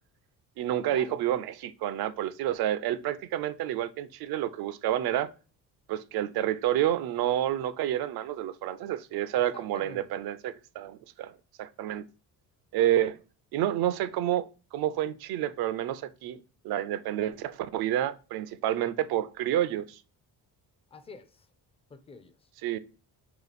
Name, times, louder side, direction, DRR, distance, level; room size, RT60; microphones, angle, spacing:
voice 1, 0.6-5.3 5.9-11.3 11.6-12.0 12.7-13.2 13.5-16.4 16.6-20.0 22.6-22.8, right 12 dB, 70° right, 0.5 m, -29 dB
voice 2, 9.4-10.2 20.9-21.5 21.9-22.5, left 4 dB, 15° left, 0.3 m, -48 dB
3.1 x 2.9 x 4.0 m
cardioid pair, 135°, 38 cm